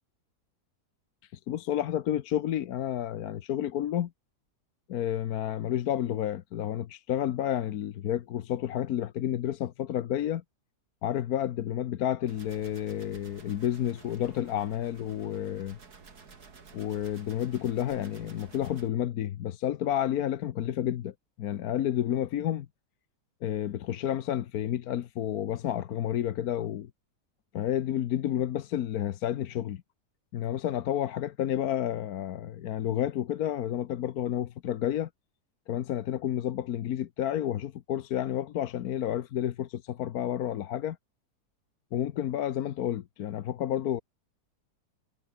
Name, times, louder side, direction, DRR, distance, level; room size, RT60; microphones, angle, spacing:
voice 1, 1.3-4.1 4.9-10.4 11.0-15.8 16.7-22.7 23.4-26.9 27.5-29.8 30.3-35.1 35.7-41.0 41.9-44.0, left 11 dB, 65° left, 1.3 m, -30 dB
sound 1, 12.3-18.9, right 5 dB, 70° right, 3.1 m, -52 dB
omnidirectional pair, 1.8 m